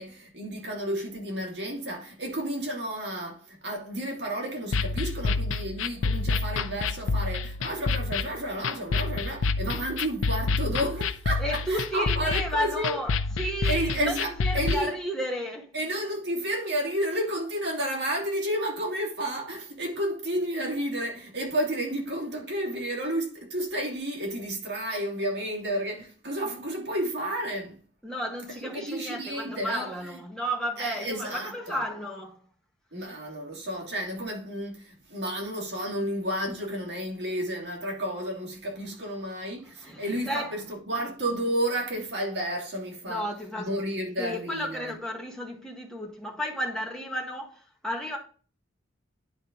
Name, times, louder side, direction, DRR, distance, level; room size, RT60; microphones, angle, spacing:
voice 1, 0.0-13.0 13.6-14.9 15.7-27.8 28.6-30.2 30.8-31.8 32.9-43.2 43.7-45.0, right 1 dB, 60° right, 2.8 m, -31 dB
sound 1, 4.7-14.7, left 4 dB, 80° left, 0.5 m, -28 dB
voice 2, 11.4-14.1 14.4-15.7 28.0-32.4 39.8-40.5 43.1-43.7 44.2-48.2, equal, 5° left, 1.5 m, -33 dB
10.5 x 4.4 x 3.8 m
head